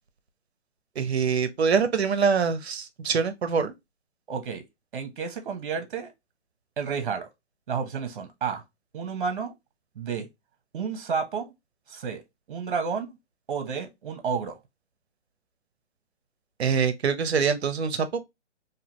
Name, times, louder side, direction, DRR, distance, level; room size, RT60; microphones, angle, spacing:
voice 1, 1.0-3.7 16.6-18.2, right 6 dB, 60° right, 0.8 m, -24 dB
voice 2, 4.3-4.6 4.9-6.1 6.8-7.3 7.7-8.6 8.9-9.5 9.9-10.3 10.7-11.5 11.9-12.2 12.5-13.2 13.5-14.6, right 6 dB, 45° right, 1.1 m, -31 dB
3.9 x 2.8 x 2.9 m
hypercardioid pair, 145°, 35 cm